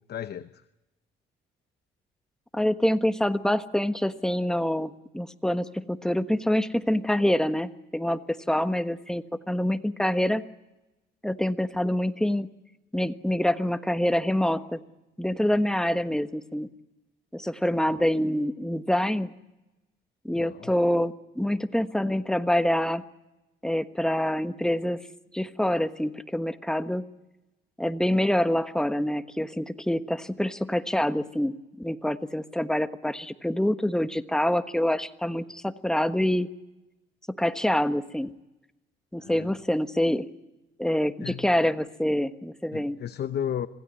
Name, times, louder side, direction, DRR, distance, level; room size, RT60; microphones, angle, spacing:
voice 1, 0.1-0.6 20.4-20.7 39.2-39.5 41.2-41.5 42.7-43.7, left 9 dB, 55° left, 12 dB, 0.9 m, -33 dB
voice 2, 2.5-10.4 11.2-12.5 12.9-14.8 15.2-16.7 17.3-19.3 20.2-23.0 23.6-25.0 25.3-27.1 27.8-36.5 37.4-38.3 39.1-40.3 40.8-43.0, left 1 dB, 5° left, 10 dB, 1.3 m, -26 dB
26.5 x 17.0 x 9.7 m, 1.0 s
cardioid pair, 90°, 20 cm